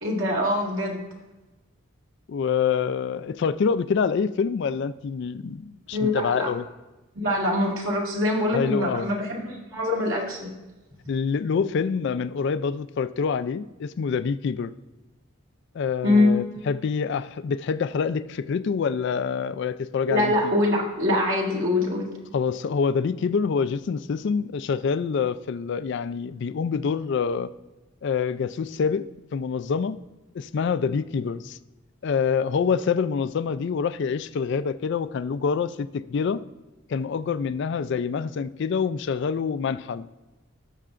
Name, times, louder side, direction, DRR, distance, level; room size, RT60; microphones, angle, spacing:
voice 1, 0.0-1.0 5.9-6.5 7.2-10.5 16.0-16.3 20.1-22.1, left 1 dB, 65° right, -1 dB, 2.0 m, -24 dB
voice 2, 2.3-6.6 8.5-9.1 11.1-14.7 15.7-20.5 22.3-27.5 28.0-29.1 29.3-30.0 30.3-31.6 32.0-36.4 36.9-40.1, left 6 dB, 55° left, 13 dB, 0.3 m, -26 dB
17.5 x 6.6 x 2.5 m, 1.1 s
head